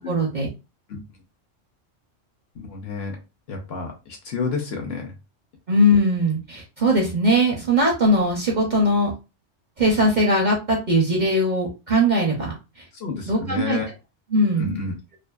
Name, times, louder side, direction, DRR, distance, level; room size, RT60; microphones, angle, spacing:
voice 1, 0.1-0.5 5.7-9.1 9.8-12.8 13.3-13.8 14.3-14.8, equal, 50° right, -1 dB, 0.6 m, -20 dB
voice 2, 2.5-3.2 3.5-5.1 12.9-13.9 14.6-14.9, left 4 dB, 60° left, 2 dB, 0.8 m, -30 dB
2.5 x 2.4 x 2.2 m, 0.28 s
omnidirectional pair, 1.3 m